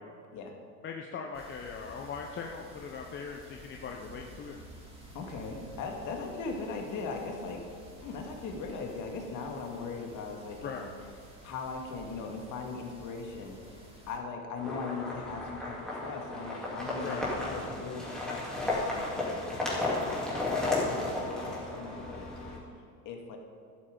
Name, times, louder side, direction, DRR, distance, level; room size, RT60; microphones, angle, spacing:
voice 1, 0.8-4.6 10.6-10.8 17.0-17.2, left 6 dB, 25° left, 1 dB, 0.8 m, -40 dB
sound 1, 1.3-14.2, equal, 15° right, 2.9 m, -51 dB
voice 2, 5.1-7.6 8.0-10.9 11.4-13.6 14.1-22.6 23.1-23.4, left 4 dB, 45° left, 2 dB, 2.1 m, -39 dB
sound 2, 14.6-22.6, left 2 dB, ahead, 3.2 m, -33 dB
12.5 x 11.5 x 3.9 m, 2.2 s
supercardioid pair, 120°, 43 cm